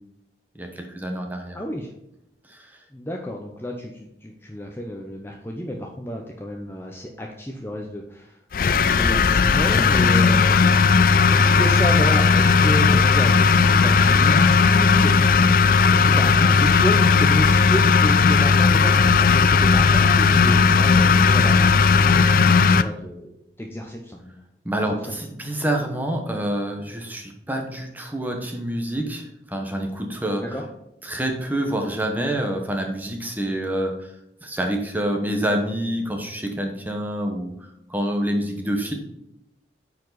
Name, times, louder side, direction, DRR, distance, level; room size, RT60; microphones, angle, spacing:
voice 1, 0.6-1.6 2.5-2.6 24.6-30.4 31.0-34.1 34.4-37.5 37.9-38.9, right 1 dB, 10° right, 3 dB, 1.1 m, -27 dB
voice 2, 1.5-1.9 2.9-8.4 8.8-10.6 11.3-15.6 15.9-24.4 25.0-25.2 30.4-30.7, equal, 15° left, 1 dB, 0.7 m, -31 dB
sound 1, 8.5-22.8, left 5 dB, 50° left, 0.4 m, -16 dB
9.4 x 4.8 x 4.0 m, 0.82 s
head